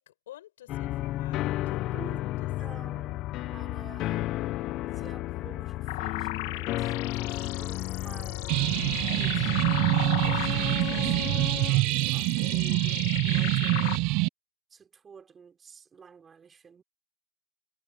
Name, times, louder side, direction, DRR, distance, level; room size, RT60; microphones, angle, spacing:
voice 1, 0.0-1.4 1.7-2.5 12.8-13.1, left 13 dB, 90° left, 4.8 m, -51 dB
sound 1, 0.7-11.7, left 16 dB, 45° left, 0.7 m, -33 dB
voice 2, 1.8-2.2 2.6-4.3 4.9-8.6 9.1-9.6 10.2-14.0 14.7-16.8, right 6 dB, 25° right, 5.1 m, -50 dB
sound 2, 5.9-14.0, left 18 dB, 75° left, 1.5 m, -37 dB
sound 3, 8.5-14.3, right 23 dB, 55° right, 0.5 m, -25 dB
supercardioid pair, 120°, 0 cm